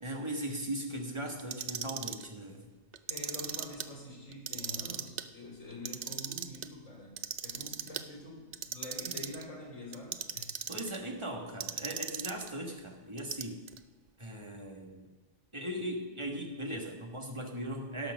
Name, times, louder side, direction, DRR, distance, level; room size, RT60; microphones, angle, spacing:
voice 1, 0.0-2.7 10.7-13.6 14.2-15.0 15.5-18.1, right 1 dB, 25° right, 2 dB, 1.5 m, -38 dB
Clock, 1.4-2.2 2.9-3.9 4.3-5.2 5.7-6.7 7.2-8.0 8.5-9.4 9.9-11.0 11.6-12.5 13.2-13.8, right 9 dB, 80° right, 0.3 m, -37 dB
voice 2, 3.1-10.5, left 1 dB, 85° left, -2 dB, 3.8 m, -46 dB
17.5 x 5.9 x 6.2 m, 1.3 s
omnidirectional pair, 1.3 m